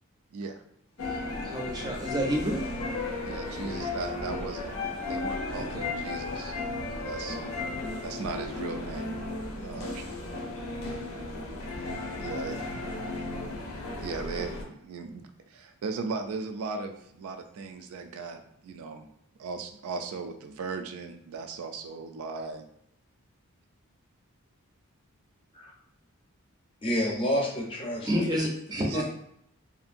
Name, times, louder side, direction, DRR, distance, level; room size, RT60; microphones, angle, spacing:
voice 1, 0.3-0.6 3.2-7.4 8.0-9.2 9.5-10.1 12.2-12.9 14.0-19.1 19.4-22.7 28.9-29.0, right 4 dB, 80° right, 6 dB, 0.3 m, -38 dB
sound 1, 1.0-14.6, left 2 dB, 70° left, 0.5 m, -35 dB
voice 2, 1.0-2.6 5.5-5.9 28.0-29.0, equal, 20° right, 0 dB, 0.5 m, -30 dB
voice 3, 26.8-28.4 28.9-29.0, equal, 25° left, -2 dB, 0.6 m, -29 dB
2.7 x 2.5 x 2.5 m, 0.73 s
head